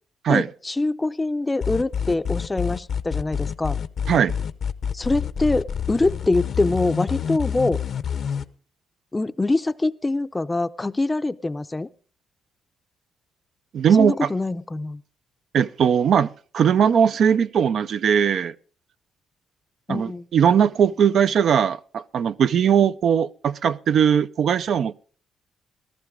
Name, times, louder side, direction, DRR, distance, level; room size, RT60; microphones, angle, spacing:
voice 1, 0.3-3.8 4.9-7.8 9.1-11.9 14.0-15.0 19.9-20.3, left 2 dB, 20° left, 0.6 m, -24 dB
sound 1, 1.6-8.4, left 7 dB, 55° left, 0.8 m, -27 dB
voice 2, 13.7-14.3 15.5-18.5 19.9-24.9, right 8 dB, 60° right, 0.5 m, -19 dB
15.0 x 14.0 x 3.7 m
cardioid pair, 90°, 0 cm